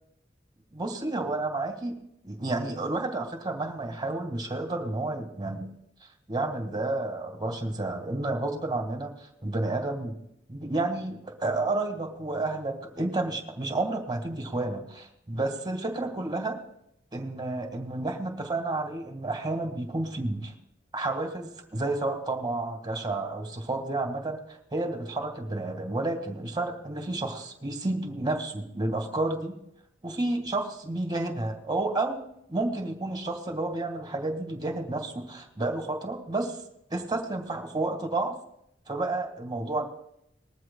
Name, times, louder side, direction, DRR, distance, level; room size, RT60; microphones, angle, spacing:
voice 1, 0.7-2.0 2.2-5.7 6.3-10.2 10.5-16.6 17.1-20.5 20.9-29.6 30.0-36.6 36.9-38.3 38.9-39.8, right 2 dB, 25° right, 3 dB, 1.7 m, -31 dB
20.0 x 14.0 x 2.2 m, 0.77 s
head